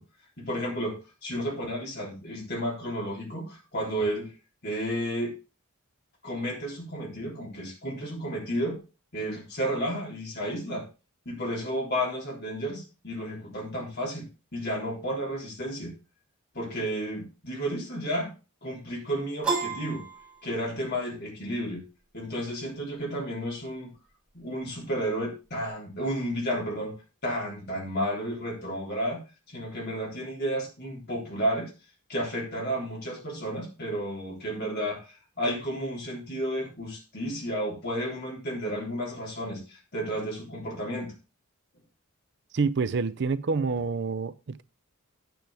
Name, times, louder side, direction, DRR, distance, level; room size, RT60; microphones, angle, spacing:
voice 1, 0.4-4.3 4.6-5.3 6.2-8.8 9.1-10.9 11.3-15.9 16.5-18.3 18.6-20.0 20.4-21.8 22.1-23.9 24.3-26.9 27.2-29.2 29.5-31.7 32.1-41.1, equal, 45° left, 3.5 m, -32 dB
Piano, 19.4-21.0, right 4 dB, 5° right, 5.6 m, -31 dB
voice 2, 42.5-44.6, right 4 dB, 50° right, 0.5 m, -27 dB
9.2 x 9.0 x 3.4 m
head